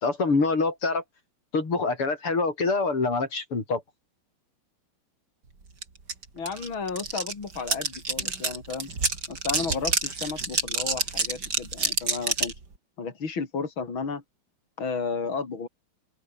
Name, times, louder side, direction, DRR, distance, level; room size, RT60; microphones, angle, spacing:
voice 1, 0.0-1.0 1.5-3.8, left 3 dB, 85° left, 6.0 m, -25 dB
sound 1, 5.8-5.9 6.1-12.6, right 4 dB, 50° right, 3.9 m, -28 dB
voice 2, 6.3-8.9 9.3-12.5 13.0-14.2 14.8-15.7, left 5 dB, 65° left, 4.3 m, -33 dB
open air
omnidirectional pair, 2.4 m